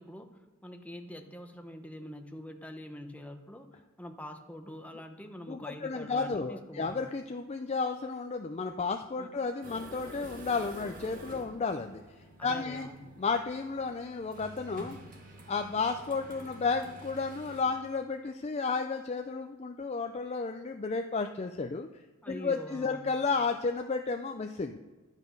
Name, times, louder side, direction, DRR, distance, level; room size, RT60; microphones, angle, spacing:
voice 1, 0.0-3.7 4.0-7.1 9.2-9.3 12.4-13.1 22.2-23.2, left 1 dB, 5° left, 5 dB, 0.8 m, -45 dB
voice 2, 5.5-12.0 12.4-12.9 13.2-15.0 15.5-21.9 22.3-24.8, left 4 dB, 35° left, 6 dB, 0.4 m, -32 dB
sound 1, 9.6-17.6, right 1 dB, 45° right, 1.9 m, -49 dB
11.5 x 8.2 x 5.3 m, 1.2 s
head